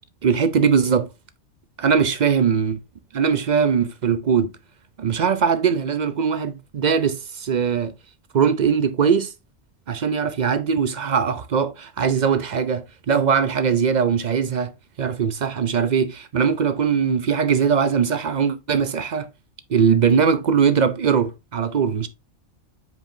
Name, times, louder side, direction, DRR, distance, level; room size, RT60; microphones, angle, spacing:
voice 1, 0.2-1.1 1.8-2.8 3.1-4.5 5.0-7.9 8.3-9.3 9.9-14.7 15.0-19.3 19.7-22.1, right 6 dB, 55° right, 0.5 m, -20 dB
7.6 x 4.7 x 2.6 m
omnidirectional pair, 1.2 m